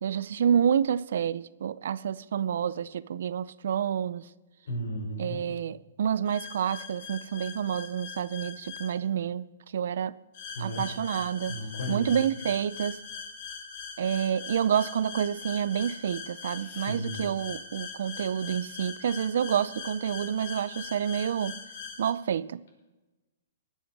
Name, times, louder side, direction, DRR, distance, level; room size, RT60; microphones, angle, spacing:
voice 1, 0.0-4.2 5.2-9.5 9.7-10.1 10.6-11.6 11.9-13.0 14.0-21.6 22.0-22.6, right 8 dB, 65° right, 0.5 m, -28 dB
voice 2, 4.7-5.4 10.6-10.9 11.5-12.1 16.6-17.2, equal, 65° left, 6.0 m, -35 dB
sound 1, 6.3-8.9 10.3-22.1, left 6 dB, 45° left, 1.8 m, -42 dB
19.5 x 8.1 x 6.0 m
hypercardioid pair, 165°, 0 cm